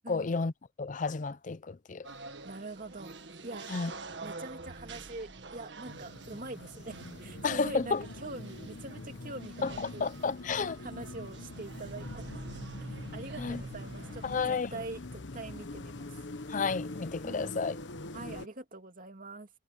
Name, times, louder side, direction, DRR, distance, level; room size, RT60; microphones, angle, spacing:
voice 1, 0.1-0.5 0.8-2.1 3.7-3.9 7.4-8.0 9.6-10.8 13.4-13.6 14.2-14.7 16.5-17.8, left 4 dB, 45° left, 0.5 m, -31 dB
sound 1, 2.0-14.4, right 3 dB, 75° right, 1.7 m, -46 dB
voice 2, 2.4-3.7 4.2-10.1 10.8-12.4 12.8-14.4 14.7-16.2 17.2-17.6 18.1-19.5, right 2 dB, 50° right, 2.5 m, -44 dB
sound 2, 5.8-18.5, left 2 dB, 80° left, 1.1 m, -44 dB
head